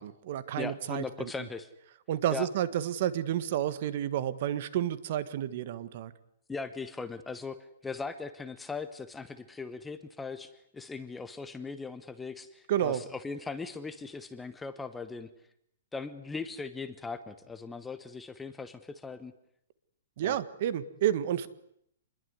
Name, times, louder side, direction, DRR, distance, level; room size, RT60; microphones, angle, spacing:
voice 1, 0.0-1.3 2.1-6.1 12.7-13.0 20.2-21.5, right 11 dB, 40° right, 15 dB, 1.6 m, -30 dB
voice 2, 0.6-1.7 2.3-2.5 6.5-7.6 7.8-15.3 15.9-19.3 20.2-20.4, left 4 dB, 5° left, 11 dB, 1.0 m, -39 dB
27.5 x 21.5 x 9.6 m, 0.73 s
hypercardioid pair, 170°, 0 cm